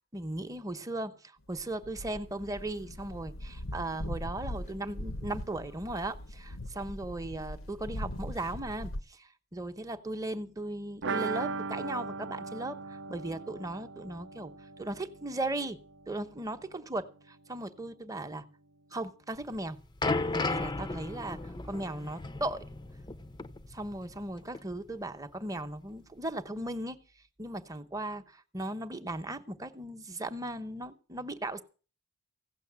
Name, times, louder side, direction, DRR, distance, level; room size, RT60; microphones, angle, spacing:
voice 1, 0.1-1.1 1.5-14.5 14.8-15.8 16.1-18.4 18.9-19.8 20.3-21.4 21.7-22.7 23.7-27.0 27.4-31.6, right 2 dB, 15° right, 0.9 m, -37 dB
sound 1, 1.5-9.0, left 1 dB, 80° left, 0.9 m, -41 dB
sound 2, 11.0-16.6 16.9-17.0 17.3-17.4, right 4 dB, 60° right, 0.6 m, -38 dB
sound 3, 19.4-24.3 24.5-24.7 25.5-25.6, left 3 dB, 20° left, 0.6 m, -35 dB
16.0 x 6.4 x 8.7 m
head